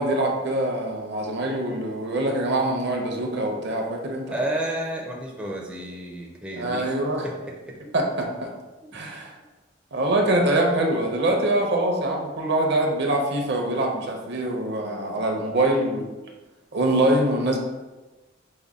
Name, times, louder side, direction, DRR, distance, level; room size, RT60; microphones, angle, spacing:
voice 1, 0.0-4.3 6.6-7.3 7.9-8.5 8.9-9.3 9.9-16.1 16.7-17.6, right 1 dB, 60° right, 1 dB, 0.7 m, -24 dB
voice 2, 4.3-6.9 7.2-7.8 8.8-9.1, right 1 dB, 5° right, -2 dB, 0.4 m, -32 dB
5.2 x 2.1 x 3.6 m, 1.2 s
head